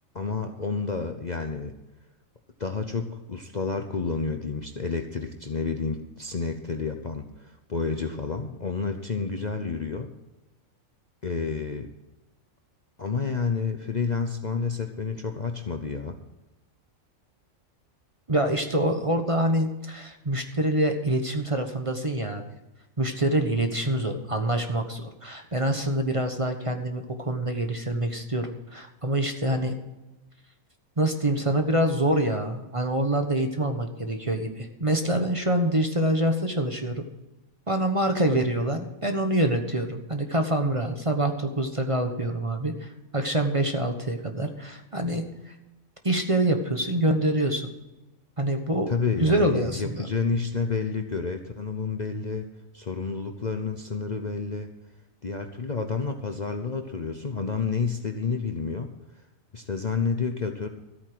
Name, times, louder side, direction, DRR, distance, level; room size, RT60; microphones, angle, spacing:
voice 1, 0.1-1.7 2.6-10.1 11.2-11.9 13.0-16.2 48.9-52.5 52.7-54.7 55.2-58.9 59.5-60.7, left 4 dB, 35° left, 5 dB, 0.9 m, -30 dB
voice 2, 18.3-22.4 23.0-29.7 31.0-37.0 37.7-45.5 46.0-47.7 48.4-48.9 49.2-50.1, right 1 dB, 25° right, 5 dB, 1.2 m, -26 dB
14.0 x 8.6 x 6.1 m, 1.0 s
omnidirectional pair, 1.4 m